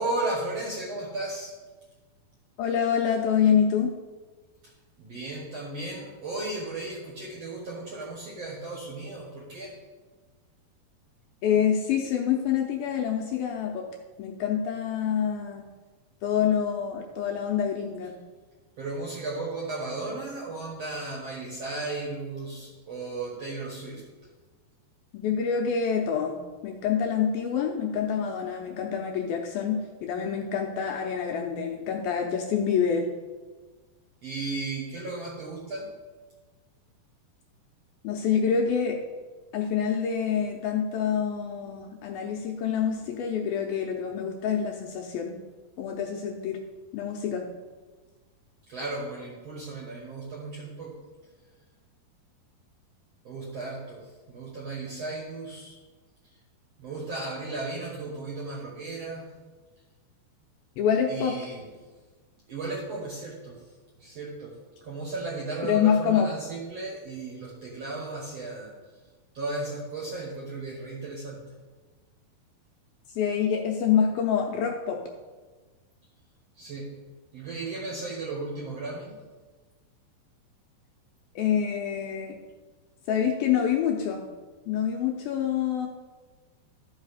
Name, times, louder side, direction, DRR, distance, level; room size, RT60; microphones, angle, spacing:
voice 1, 0.0-1.6 4.6-4.7 5.0-9.8 18.8-24.0 34.2-35.9 48.7-51.0 53.2-55.8 56.3-56.4 56.8-59.3 61.1-61.6 62.5-63.7 64.0-64.5 64.8-69.0 69.3-71.4 76.5-77.0 77.3-79.2, right 2 dB, 55° right, -3 dB, 1.9 m, -35 dB
voice 2, 2.6-3.9 11.4-13.9 14.2-15.7 16.2-18.1 25.1-26.3 26.6-33.1 38.0-39.0 39.5-45.4 45.8-46.6 46.9-47.5 60.8-61.3 65.6-66.3 73.2-75.0 81.4-82.4 83.1-84.2 84.7-85.9, left 7 dB, 80° left, 1 dB, 2.3 m, -26 dB
13.0 x 5.6 x 4.9 m, 1.3 s
omnidirectional pair, 4.8 m